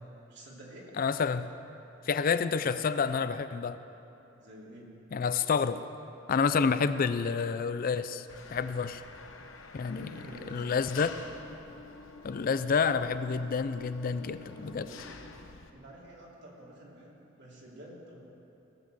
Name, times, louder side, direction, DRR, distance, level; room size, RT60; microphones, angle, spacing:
voice 1, 0.3-1.0 4.4-4.9 9.8-10.8 14.3-15.1 15.7-18.2, right 1 dB, 60° right, -4 dB, 2.8 m, -50 dB
voice 2, 1.0-1.5 2.0-3.8 5.1-5.8 6.3-9.0 9.7-10.2 10.5-11.1 12.2-14.9, left 5 dB, 45° left, 12 dB, 0.4 m, -29 dB
Engine, 8.3-15.7, left 4 dB, 85° left, 0.9 m, -48 dB
17.5 x 7.2 x 7.5 m, 2.9 s
head